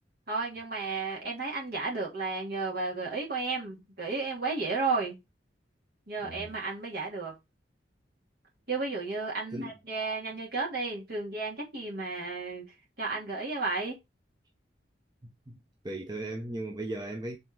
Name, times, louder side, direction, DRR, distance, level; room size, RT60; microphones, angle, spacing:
voice 1, 0.3-5.2 6.1-7.3 8.7-12.7 13.0-14.0, right 3 dB, 55° right, 2.9 m, -33 dB
voice 2, 15.2-15.6 15.8-17.4, right 1 dB, 20° right, 0.8 m, -37 dB
5.7 x 4.0 x 4.5 m
head